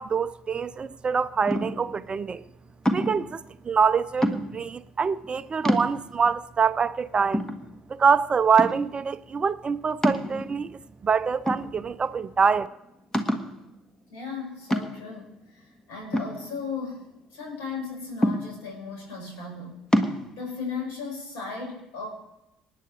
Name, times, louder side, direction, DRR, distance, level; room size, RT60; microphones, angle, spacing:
voice 1, 0.0-2.4 2.9-7.4 7.9-12.7, right 6 dB, 30° right, 0.5 m, -25 dB
sound 1, 1.5-1.9 2.9-3.3 4.2-4.7 5.2-5.3 5.7-6.3 6.8-6.9 7.3-8.1 8.6-9.0 10.0-10.8 11.5-12.1 12.4-12.5 13.1-13.6 14.7-15.2 16.1-17.0 18.2-18.8 19.9-20.2, equal, 15° left, 1.6 m, -26 dB
voice 2, 14.1-17.0 17.3-19.8 20.4-22.1, left 4 dB, 65° left, 6.3 m, -36 dB
27.0 x 9.2 x 3.4 m
figure-of-eight pair, 55°, 3 cm